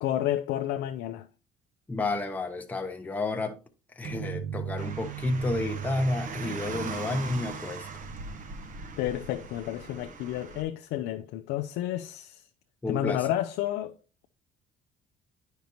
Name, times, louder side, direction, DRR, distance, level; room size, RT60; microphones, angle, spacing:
voice 1, 0.0-1.3 9.0-12.5 12.9-13.9, left 12 dB, 90° left, 0.5 m, -31 dB
voice 2, 1.9-3.6 3.9-7.9 12.8-13.3, left 2 dB, 10° left, 0.8 m, -31 dB
sound 1, 4.0-9.6, right 9 dB, 80° right, 0.9 m, -39 dB
Car, 4.8-10.6, right 4 dB, 50° right, 0.9 m, -40 dB
9.2 x 5.2 x 2.8 m
cardioid pair, 110°, 17 cm